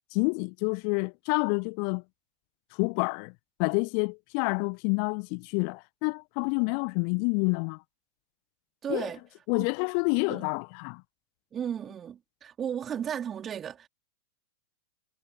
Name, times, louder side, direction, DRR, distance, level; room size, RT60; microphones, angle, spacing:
voice 1, 0.1-2.0 2.7-3.3 3.6-7.8 8.9-9.1 9.5-11.0, left 40 dB or more, 45° left, 1.3 m, -28 dB
voice 2, 8.8-9.2 9.6-9.7 10.3-10.4 11.5-13.9, right 8 dB, 25° right, 4.2 m, -34 dB
figure-of-eight pair, 90°, 0 cm